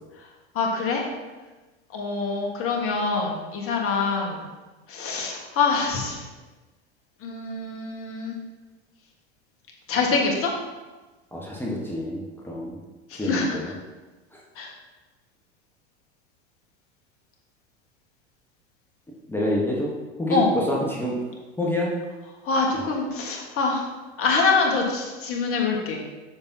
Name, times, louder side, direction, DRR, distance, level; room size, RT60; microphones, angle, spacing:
voice 1, 0.5-1.0 1.9-4.4 4.9-6.2 7.2-8.4 9.9-10.5 13.1-13.6 14.5-14.7 20.3-20.5 22.4-23.9 24.2-26.0, left 4 dB, 40° left, 0 dB, 1.5 m, -25 dB
voice 2, 11.3-12.7 13.2-13.7 14.3-14.4 19.3-19.9 20.2-21.2 21.6-21.9 22.7-22.8, left 1 dB, 5° left, -4 dB, 1.1 m, -27 dB
6.8 x 5.3 x 2.8 m, 1.2 s
hypercardioid pair, 90°, 34 cm